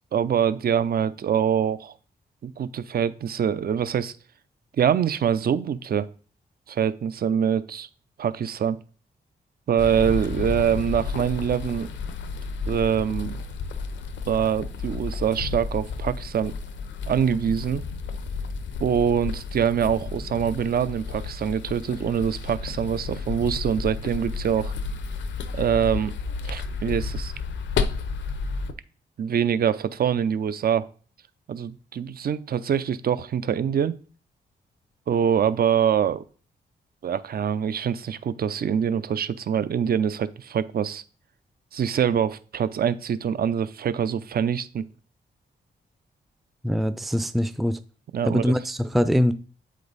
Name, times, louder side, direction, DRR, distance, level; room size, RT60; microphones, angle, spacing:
voice 1, 0.1-1.9 2.4-4.1 4.8-6.1 6.7-7.9 8.2-8.8 9.7-11.9 12.7-13.4 14.3-16.5 17.1-17.8 18.8-24.7 25.5-26.1 26.4-27.3 29.2-30.9 31.5-34.0 35.1-36.2 37.0-41.0 41.7-44.9 48.1-48.5, right 8 dB, 55° right, 15 dB, 0.6 m, -24 dB
sound 1, 9.8-28.7, left 4 dB, 80° left, 0.8 m, -32 dB
voice 2, 46.6-47.8 48.2-49.3, equal, ahead, 12 dB, 0.5 m, -23 dB
7.8 x 5.2 x 4.0 m, 0.40 s
cardioid pair, 65°, 19 cm